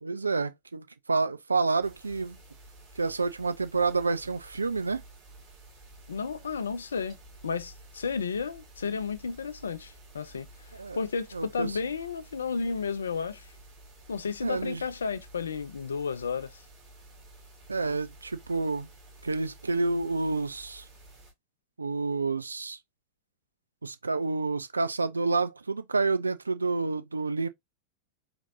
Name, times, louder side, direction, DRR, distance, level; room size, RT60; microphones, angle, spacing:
voice 1, 0.0-2.4 3.0-5.0 10.7-11.0 11.3-11.7 14.4-14.8 17.7-18.9 19.2-20.8 21.8-22.8 23.8-27.5, right 3 dB, 80° right, 0.4 m, -29 dB
sound 1, 1.8-21.3, right 1 dB, 35° right, 2.3 m, -52 dB
voice 2, 6.1-7.2 7.4-10.5 10.9-13.5 14.1-16.6, left 5 dB, 70° left, 0.4 m, -32 dB
4.3 x 2.9 x 2.6 m
figure-of-eight pair, 90°, 0 cm